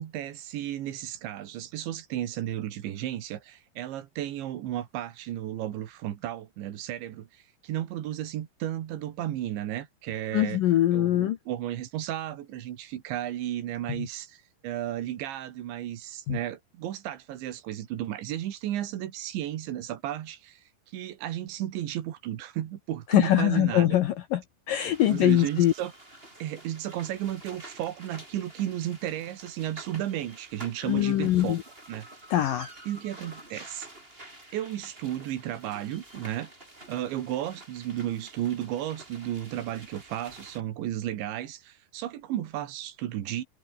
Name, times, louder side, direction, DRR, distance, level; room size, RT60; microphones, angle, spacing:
voice 1, 0.0-7.3 7.6-10.6 10.9-20.6 20.9-24.0 25.1-25.9 26.4-31.6 31.9-32.1 32.9-33.9 34.5-36.5 36.9-43.4, right 12 dB, 80° right, 4.1 m, -33 dB
voice 2, 10.3-11.4 14.0-14.1 16.3-16.4 23.1-24.4 24.7-25.7 30.8-31.6 32.3-32.7, left 13 dB, 75° left, 2.1 m, -23 dB
sound 1, 24.7-40.6, right 1 dB, 10° right, 6.0 m, -49 dB
omnidirectional pair, 5.2 m